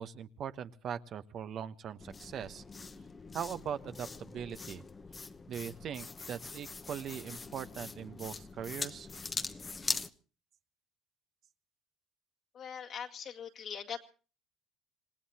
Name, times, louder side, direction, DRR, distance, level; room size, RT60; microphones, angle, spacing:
voice 1, 0.0-2.6 3.3-4.8 5.5-9.1, right 8 dB, 50° right, 10 dB, 1.0 m, -40 dB
sound 1, 2.0-10.1, left 4 dB, 25° left, 1.0 m, -42 dB
voice 2, 12.5-14.1, left 7 dB, 50° left, 2 dB, 2.0 m, -42 dB
27.0 x 18.5 x 2.9 m, 0.38 s
supercardioid pair, 80°, 0 cm